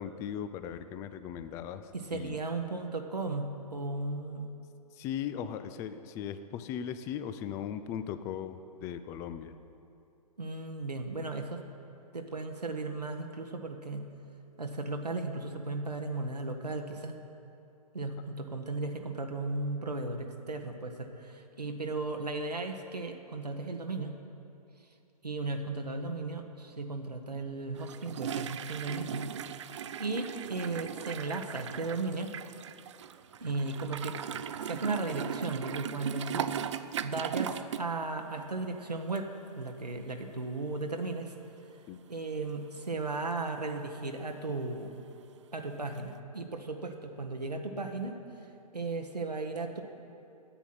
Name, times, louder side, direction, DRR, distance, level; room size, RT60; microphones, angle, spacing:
voice 1, 0.0-2.4 4.9-9.5 41.9-42.0, left 9 dB, 15° left, 11 dB, 0.3 m, -38 dB
voice 2, 1.9-4.5 10.4-11.6 12.1-14.1 14.6-17.2 17.9-24.2 25.2-29.7 30.0-32.3 33.4-34.2 34.6-36.5 37.0-39.3 39.5-41.3 42.1-44.9 45.5-48.2 48.7-49.8, right 3 dB, 85° right, 3 dB, 1.0 m, -36 dB
sound 1, 27.7-37.9 38.2-38.5 39.2-39.3 39.6-39.7 46.0-46.1, right 9 dB, 50° right, 0.5 m, -38 dB
10.0 x 8.3 x 8.9 m, 2.7 s
figure-of-eight pair, 120°, 20 cm